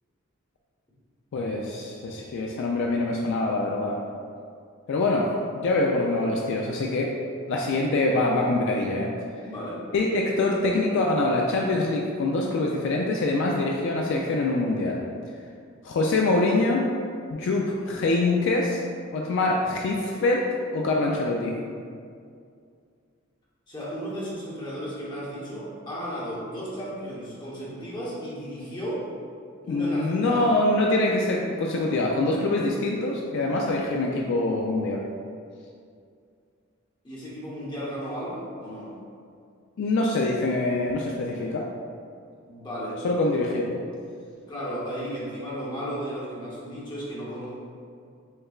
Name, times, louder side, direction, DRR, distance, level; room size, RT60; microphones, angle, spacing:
voice 1, 1.3-4.0 4.9-5.3 5.6-7.1 7.5-9.1 9.9-15.0 15.8-16.9 17.3-18.8 19.1-21.6 29.7-35.0 39.8-41.7 43.0-43.8, left 2 dB, 60° left, -1 dB, 0.3 m, -24 dB
voice 2, 9.4-9.8 23.7-29.0 29.6-30.5 37.0-38.9 42.5-43.0 44.5-47.6, equal, 20° left, -8 dB, 0.9 m, -34 dB
6.4 x 2.2 x 2.4 m, 2.3 s
head